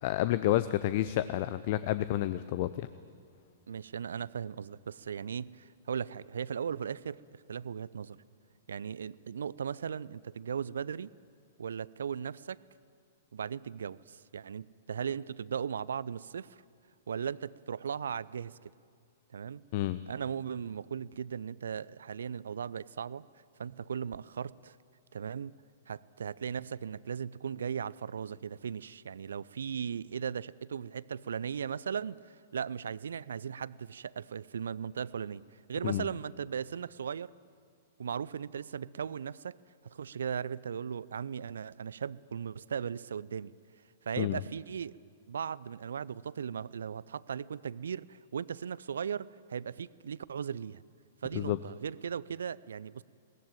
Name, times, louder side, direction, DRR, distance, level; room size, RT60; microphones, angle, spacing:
voice 1, 0.0-2.9 19.7-20.0 35.8-36.0 44.2-44.4 51.3-51.6, left 14 dB, 45° left, 14 dB, 0.6 m, -30 dB
voice 2, 3.7-8.2 8.7-11.1 11.6-12.6 13.3-16.6 17.1-18.7 19.3-19.6 20.1-23.3 23.6-24.8 25.1-25.5 25.9-37.3 38.0-39.6 39.8-43.5 44.0-45.0 45.3-50.8 51.2-53.0, right 7 dB, 65° right, 21 dB, 0.5 m, -37 dB
21.0 x 18.5 x 9.0 m, 2.2 s
figure-of-eight pair, 110°, 0 cm